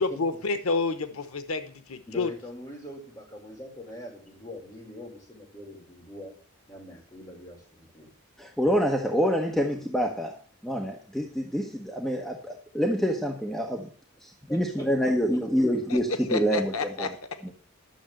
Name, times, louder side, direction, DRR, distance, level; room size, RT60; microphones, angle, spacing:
voice 1, 0.2-2.3 15.9-16.0 16.3-17.1, left 3 dB, 90° left, 10 dB, 1.0 m, -29 dB
voice 2, 2.1-6.3 6.7-8.1 14.5-15.6, left 1 dB, 20° left, -2 dB, 5.2 m, -43 dB
voice 3, 8.4-10.3 10.6-13.9 14.2-17.1 17.4-17.5, equal, ahead, 0 dB, 1.2 m, -27 dB
11.5 x 6.9 x 7.7 m, 0.42 s
head